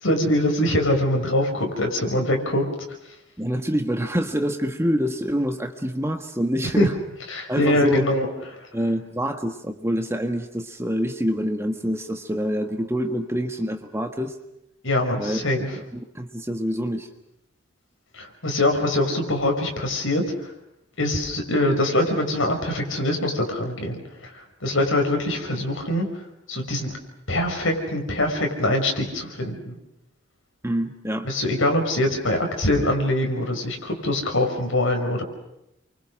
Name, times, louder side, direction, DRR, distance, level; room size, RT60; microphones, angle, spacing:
voice 1, 0.0-2.7 6.8-6.9 7.3-8.3 14.8-15.7 18.2-20.2 21.0-24.0 24.6-26.1 26.5-26.9 27.3-29.8 31.2-35.2, left 1 dB, 75° left, 3 dB, 5.6 m, -23 dB
voice 2, 3.4-6.9 7.5-8.1 8.7-14.4 15.2-15.4 16.1-17.1 30.6-31.4, equal, 10° right, 6 dB, 1.5 m, -26 dB
29.5 x 24.5 x 6.4 m, 0.83 s
head